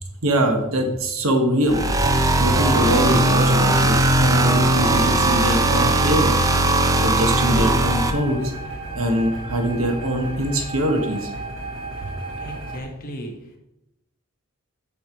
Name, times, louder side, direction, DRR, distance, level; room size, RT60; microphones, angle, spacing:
voice 1, 0.2-1.8 2.4-6.4 7.0-8.4 8.9-11.3, equal, 80° right, 3 dB, 1.1 m, -23 dB
sound 1, 1.7-8.1, right 2 dB, 15° right, 0.4 m, -19 dB
sound 2, 1.7-12.8, right 2 dB, 60° right, 1.6 m, -33 dB
voice 2, 12.4-13.6, equal, 45° left, 2 dB, 0.9 m, -36 dB
8.6 x 3.3 x 4.3 m, 0.90 s
head